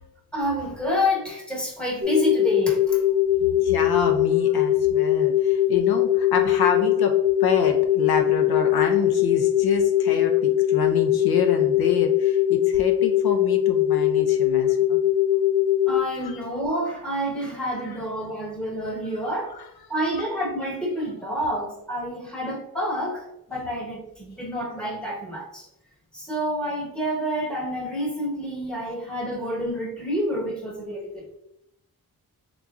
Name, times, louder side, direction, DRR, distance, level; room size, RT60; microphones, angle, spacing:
voice 1, 0.3-3.0 15.9-19.6 19.9-25.7 26.1-31.4, equal, ahead, -2 dB, 1.0 m, -28 dB
sound 1, 2.0-16.0, left 11 dB, 30° right, 0.4 m, -21 dB
voice 2, 3.4-15.0 16.3-16.4 17.8-18.0 19.5-19.7, left 5 dB, 75° left, 5 dB, 0.5 m, -28 dB
3.8 x 2.9 x 2.3 m, 0.80 s
cardioid pair, 80°, 38 cm